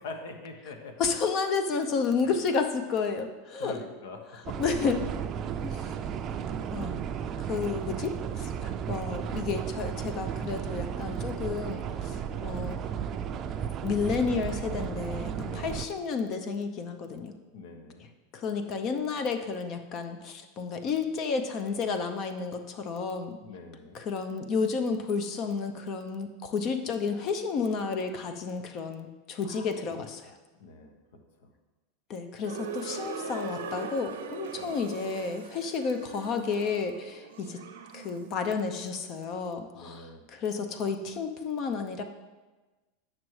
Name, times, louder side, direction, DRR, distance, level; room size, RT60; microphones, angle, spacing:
voice 1, 0.0-1.0 2.2-2.4 3.6-4.2 4.5-4.6 12.3-12.5 15.4-15.8 17.5-18.1 23.4-24.0 29.4-30.0 30.6-30.9 34.5-34.7 39.7-40.2, left 3 dB, 80° left, 5 dB, 1.1 m, -44 dB
voice 2, 1.0-3.8 4.6-5.0 5.6-5.9 6.7-6.9 7.4-12.8 13.8-17.3 18.3-23.4 23.9-30.3 32.1-37.6 37.9-42.0, left 5 dB, 45° left, 8 dB, 0.6 m, -31 dB
sound 1, 4.4-15.9, right 8 dB, 35° right, 0.4 m, -34 dB
sound 2, 32.4-38.3, right 5 dB, 85° right, 0.7 m, -40 dB
8.9 x 6.2 x 3.2 m, 1.2 s
supercardioid pair, 130°, 0 cm